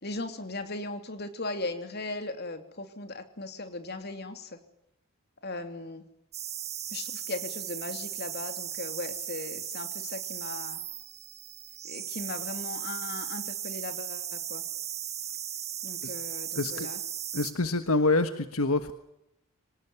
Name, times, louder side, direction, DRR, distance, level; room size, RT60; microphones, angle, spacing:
voice 1, 0.0-4.6 5.4-6.0 6.9-10.8 11.8-14.6 15.8-17.0, left 2 dB, 50° left, 8 dB, 3.1 m, -38 dB
sound 1, 6.3-17.5, right 10 dB, 30° right, 1.7 m, -37 dB
voice 2, 16.5-16.9 17.3-18.9, left 2 dB, 80° left, 10 dB, 1.4 m, -26 dB
25.0 x 19.0 x 9.8 m, 0.82 s
head